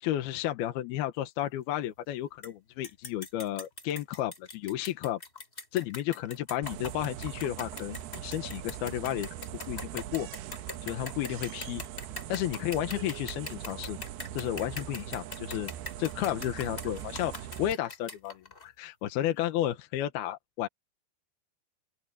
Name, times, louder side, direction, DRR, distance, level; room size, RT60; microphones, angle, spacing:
voice 1, 0.0-5.2 5.7-9.3 9.7-10.3 10.8-11.8 12.3-14.0 14.3-15.7 16.0-20.7, left 13 dB, 75° left, 3.0 m, -32 dB
sound 1, 2.4-2.5 2.8-18.7, left 2 dB, 15° left, 3.3 m, -42 dB
sound 2, 6.6-17.7, right 11 dB, 90° right, 3.0 m, -41 dB
open air
omnidirectional pair, 4.6 m